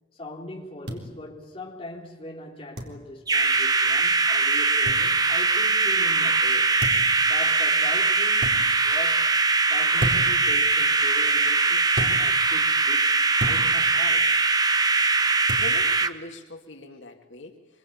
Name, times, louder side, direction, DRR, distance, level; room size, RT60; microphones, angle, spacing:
voice 1, 0.1-6.8 7.2-9.4 9.7-14.3, left 1 dB, 30° left, 3.7 m, -41 dB
sound 1, 0.9-1.0 2.7-2.9 4.8-5.0 6.8-7.1 8.4-8.6 10.0-10.4 11.9-12.2 13.4-13.6 15.5-15.7, equal, 70° right, 4.1 m, -29 dB
sound 2, 3.3-16.1, right 4 dB, 20° right, 0.9 m, -21 dB
voice 2, 15.6-17.8, left 2 dB, 90° left, 2.6 m, -41 dB
25.5 x 24.5 x 8.8 m
head